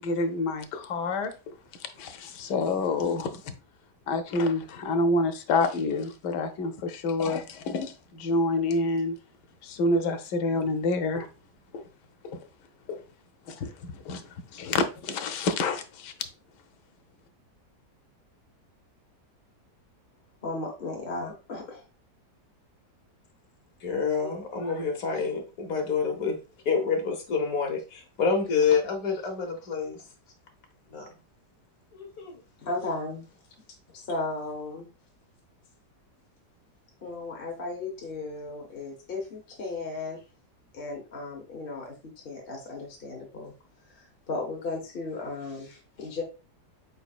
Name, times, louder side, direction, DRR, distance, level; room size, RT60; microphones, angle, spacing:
voice 1, 0.0-3.6 4.1-9.2 9.6-11.3 11.7-11.9 12.2-12.4 12.9-13.0 13.5-16.1, left 2 dB, 90° left, 1.2 m, -28 dB
voice 2, 20.4-21.8 32.6-33.3 33.9-34.9 37.0-40.2 40.7-43.5 43.9-46.2, left 3 dB, 40° left, 0.9 m, -35 dB
voice 3, 23.8-26.4 26.6-30.0 30.9-31.1 31.9-32.4, left 5 dB, 60° left, 1.4 m, -27 dB
4.5 x 4.1 x 2.3 m
omnidirectional pair, 1.8 m